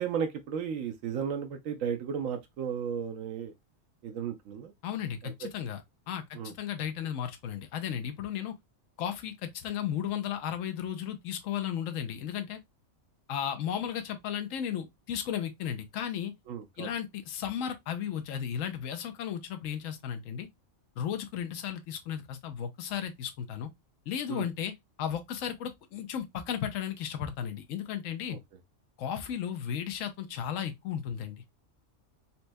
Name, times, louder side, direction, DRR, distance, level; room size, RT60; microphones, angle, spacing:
voice 1, 0.0-3.5 4.0-4.7 5.2-5.5 6.3-6.5 16.5-16.9 24.3-24.5 28.3-28.4, right 7 dB, 85° right, 1.0 m, -34 dB
voice 2, 4.8-5.8 6.1-8.5 9.0-12.6 13.3-16.3 16.8-20.5 21.0-23.7 24.1-24.7 25.0-28.4 29.0-31.4, left 9 dB, 80° left, 1.0 m, -34 dB
4.2 x 2.2 x 2.5 m
omnidirectional pair, 1.3 m